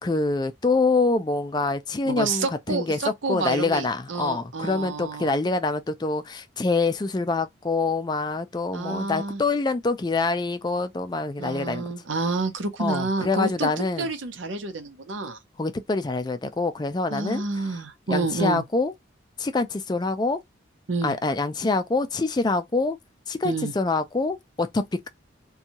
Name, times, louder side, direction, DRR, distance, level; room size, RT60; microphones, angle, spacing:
voice 1, 0.0-3.0 3.3-11.9 12.8-14.1 15.6-17.4 18.1-18.9 19.4-20.4 21.0-23.0 23.3-25.1, left 3 dB, 20° left, 0.3 m, -25 dB
voice 2, 2.1-5.4 8.7-9.4 11.4-15.4 17.1-18.6 20.9-21.2 23.4-23.7, right 3 dB, 85° right, 0.7 m, -29 dB
2.6 x 2.3 x 2.8 m
head